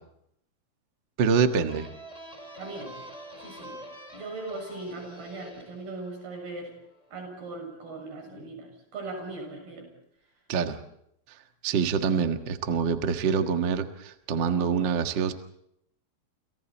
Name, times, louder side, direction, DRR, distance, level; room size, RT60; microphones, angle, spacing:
voice 1, 1.2-1.9 10.5-10.8 11.6-15.3, right 6 dB, 50° right, 6 dB, 1.4 m, -25 dB
sound 1, 1.7-7.1, equal, 10° left, 3.5 m, -46 dB
voice 2, 2.6-3.0 3.4-3.8 4.1-6.8 7.1-9.9, right 2 dB, 90° right, 3 dB, 8.8 m, -39 dB
30.0 x 29.0 x 4.4 m, 0.75 s
omnidirectional pair, 4.3 m